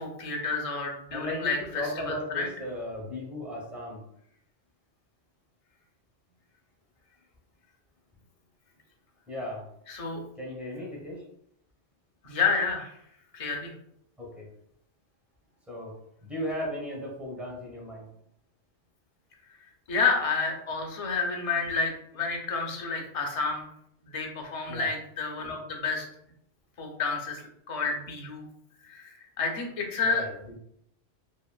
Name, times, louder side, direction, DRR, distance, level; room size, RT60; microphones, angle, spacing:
voice 1, 0.0-2.5 9.9-10.2 12.2-12.9 13.3-13.7 19.9-23.7 24.0-26.1 26.8-28.5 28.8-30.3, left 4 dB, 50° left, 1 dB, 0.4 m, -30 dB
voice 2, 1.1-4.0 9.3-9.7 10.4-11.2 14.2-14.5 15.7-16.0 16.2-18.1 24.7-24.9 30.0-30.5, equal, ahead, -4 dB, 0.6 m, -36 dB
2.8 x 2.6 x 2.2 m, 0.74 s
omnidirectional pair, 1.2 m